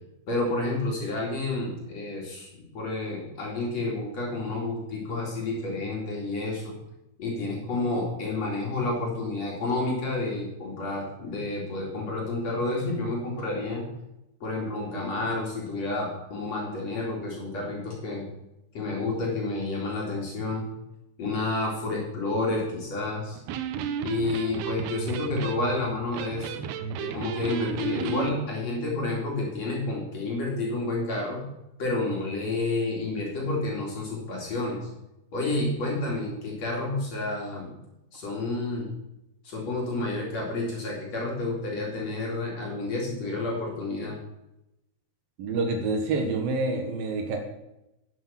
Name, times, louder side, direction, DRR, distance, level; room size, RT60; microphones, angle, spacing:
voice 1, 0.3-6.8 7.2-13.9 14.4-18.3 18.7-20.7 21.2-23.4 24.0-26.6 27.0-31.4 31.8-34.9 35.3-37.7 38.1-38.9 39.4-44.2, left 2 dB, 45° left, -2 dB, 3.3 m, -30 dB
Electric guitar, 23.3-28.4, right 7 dB, 85° right, 2.7 m, -33 dB
voice 2, 45.4-47.4, right 3 dB, 65° right, 3 dB, 3.0 m, -27 dB
11.0 x 7.8 x 5.8 m, 0.90 s
omnidirectional pair, 4.6 m